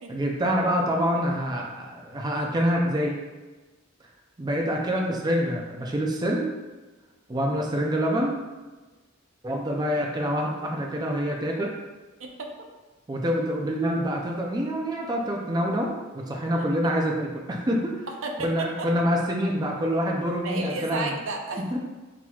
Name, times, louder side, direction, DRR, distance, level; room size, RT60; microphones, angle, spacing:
voice 1, 0.1-3.2 4.4-6.5 7.3-8.3 9.4-11.7 13.1-18.1 18.4-21.1 21.6-21.8, equal, 20° right, -1 dB, 0.4 m, -26 dB
voice 2, 12.2-12.5 18.1-18.9 20.4-21.6, right 3 dB, 70° right, 2 dB, 0.6 m, -32 dB
5.8 x 2.9 x 2.3 m, 1.2 s
head